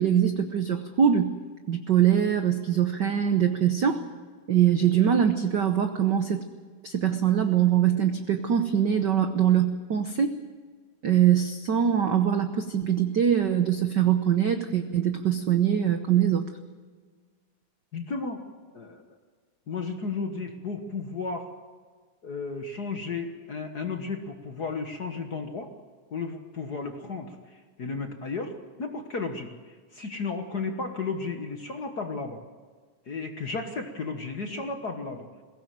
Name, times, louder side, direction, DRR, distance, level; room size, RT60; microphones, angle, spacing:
voice 1, 0.0-1.3 1.7-4.0 4.5-6.4 6.8-10.3 11.0-16.5, right 9 dB, 75° right, 7 dB, 1.0 m, -23 dB
voice 2, 17.9-18.4 18.7-19.0 19.7-21.5 22.2-25.7 26.1-32.4 33.0-35.3, left 4 dB, 45° left, 5 dB, 1.4 m, -34 dB
21.5 x 17.0 x 7.7 m, 1.5 s
omnidirectional pair, 3.4 m